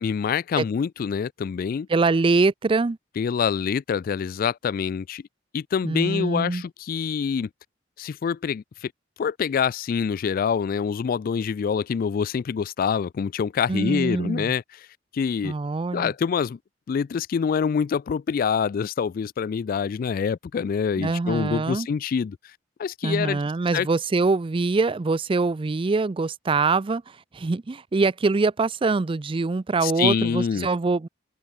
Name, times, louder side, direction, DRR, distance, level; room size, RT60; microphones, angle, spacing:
voice 1, 0.0-1.9 3.2-5.2 5.5-7.5 8.0-8.9 9.2-14.6 15.1-15.5 15.9-16.6 16.9-22.4 22.8-23.4 23.7-23.9 29.8-30.7, left 6 dB, 50° left, 0.3 m, -25 dB
voice 2, 1.9-3.0 5.8-6.6 13.7-14.5 15.4-16.1 21.0-21.9 23.0-31.1, right 3 dB, 30° right, 0.4 m, -24 dB
open air
head